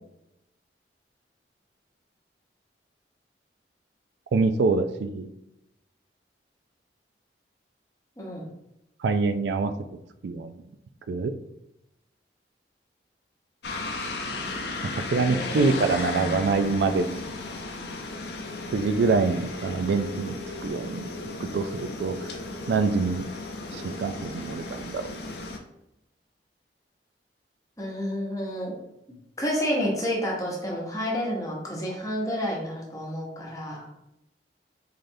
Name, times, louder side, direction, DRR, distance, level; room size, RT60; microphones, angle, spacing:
voice 1, 4.3-5.3 9.0-9.7 10.2-10.6 11.1-11.3 15.1-17.3 18.7-20.3 20.6-21.1 21.5-22.2 22.7-23.2 23.7-25.0, right 4 dB, 75° right, 9 dB, 0.3 m, -25 dB
voice 2, 8.2-8.5 15.3-16.6 27.8-28.7 29.4-33.9, equal, 20° left, -3 dB, 1.0 m, -30 dB
sound 1, 13.6-25.6, left 2 dB, 65° left, 0.5 m, -35 dB
3.8 x 3.3 x 2.7 m, 0.84 s
head